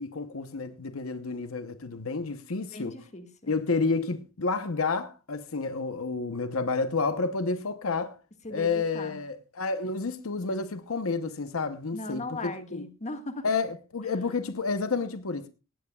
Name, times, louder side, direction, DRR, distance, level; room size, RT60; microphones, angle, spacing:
voice 1, 0.0-3.0 3.5-8.2 8.5-12.9 13.4-15.5, left 4 dB, 85° left, 0.9 m, -30 dB
voice 2, 2.7-3.5 8.4-9.2 11.9-13.5, left 2 dB, 35° left, 1.7 m, -38 dB
18.0 x 16.0 x 2.3 m
head